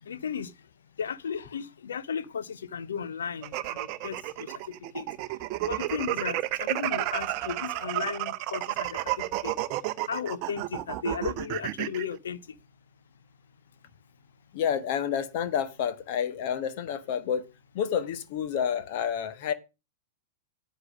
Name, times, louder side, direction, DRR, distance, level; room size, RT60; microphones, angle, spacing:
voice 1, 0.0-0.5 1.0-4.5 4.9-5.1 5.7-9.0 9.4-9.5 10.1-12.4, left 7 dB, 65° left, 0.9 m, -35 dB
sound 1, 3.4-12.0, right 15 dB, 40° right, 0.7 m, -31 dB
voice 2, 14.5-17.4 17.7-19.5, left 8 dB, 50° left, 1.4 m, -29 dB
9.8 x 8.1 x 6.2 m
figure-of-eight pair, 95°, 0 cm